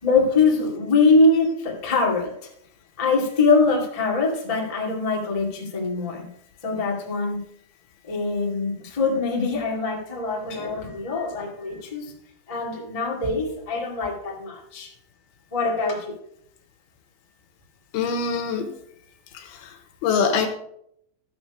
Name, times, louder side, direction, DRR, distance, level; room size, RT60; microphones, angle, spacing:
voice 1, 0.0-2.5 3.0-6.3 6.6-7.4 8.1-12.1 12.5-14.9 15.5-16.2, left 3 dB, 45° left, -1 dB, 0.4 m, -23 dB
voice 2, 17.9-18.7 19.3-19.7 20.0-20.5, left 5 dB, 75° left, 6 dB, 3.0 m, -24 dB
12.0 x 6.9 x 4.9 m, 0.70 s
omnidirectional pair, 4.6 m